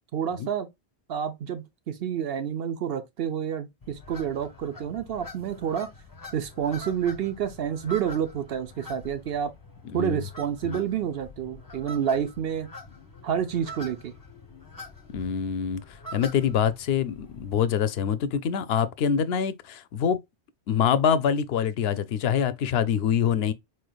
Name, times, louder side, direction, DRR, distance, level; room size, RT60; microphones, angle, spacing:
voice 1, 0.1-0.7 1.1-5.9 6.3-9.5 9.9-12.7 13.2-14.1, right 8 dB, 65° right, 0.8 m, -29 dB
sound 1, 3.8-17.6, left 1 dB, 20° left, 0.8 m, -45 dB
voice 2, 9.8-10.2 10.6-10.9 15.1-15.8 16.1-20.2 20.7-23.5, left 8 dB, 70° left, 0.8 m, -25 dB
4.4 x 3.2 x 2.2 m
omnidirectional pair, 1.1 m